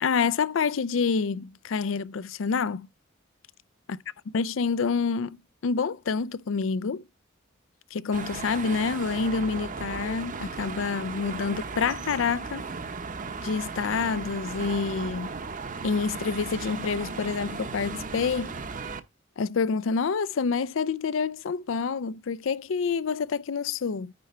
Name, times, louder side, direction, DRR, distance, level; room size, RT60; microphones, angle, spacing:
voice 1, 0.0-2.9 4.3-5.4 5.6-7.0 7.9-12.7 13.4-15.4 15.8-18.6 19.4-24.1, left 5 dB, 70° left, 0.4 m, -27 dB
sound 1, 8.1-19.0, right 4 dB, 40° right, 0.8 m, -36 dB
9.7 x 4.5 x 4.2 m
head